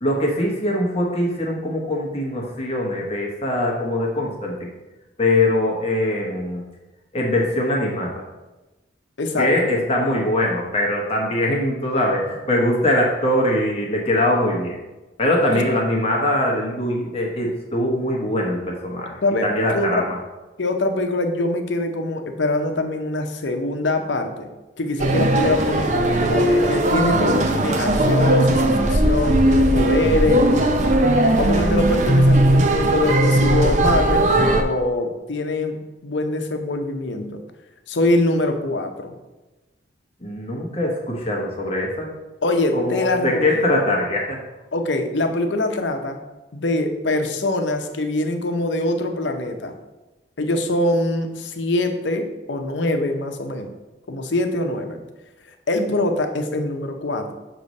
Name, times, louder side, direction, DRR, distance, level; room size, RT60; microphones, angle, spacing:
voice 1, 0.0-4.7 5.2-6.6 7.1-8.1 9.4-14.7 15.2-19.1 19.4-20.2 40.2-42.1 42.7-44.4, left 1 dB, 35° left, -2 dB, 1.1 m, -22 dB
voice 2, 9.2-9.7 15.5-15.8 19.2-19.5 19.7-20.0 20.6-24.5 24.8-30.4 31.4-37.4 37.9-39.1 42.4-43.7 44.7-46.2 46.5-49.7 50.4-53.7 54.1-55.0 55.7-57.3, left 2 dB, 90° left, 6 dB, 0.7 m, -23 dB
sound 1, 25.0-34.6, right 1 dB, 40° right, 0.5 m, -18 dB
6.8 x 3.1 x 5.2 m, 1.1 s
head